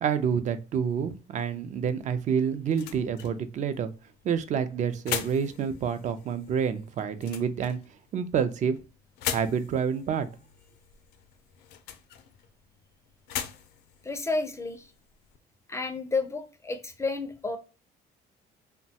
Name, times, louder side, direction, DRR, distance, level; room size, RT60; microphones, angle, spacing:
voice 1, 0.0-3.9 4.2-7.8 8.1-8.8 9.3-10.3, right 7 dB, 45° right, 11 dB, 0.4 m, -28 dB
sound 1, 2.0-15.4, left 10 dB, 80° left, 0.4 m, -41 dB
voice 2, 14.0-14.9 15.7-17.6, left 3 dB, 15° left, 8 dB, 0.4 m, -31 dB
3.0 x 2.2 x 2.7 m, 0.33 s
cardioid pair, 110°, 17 cm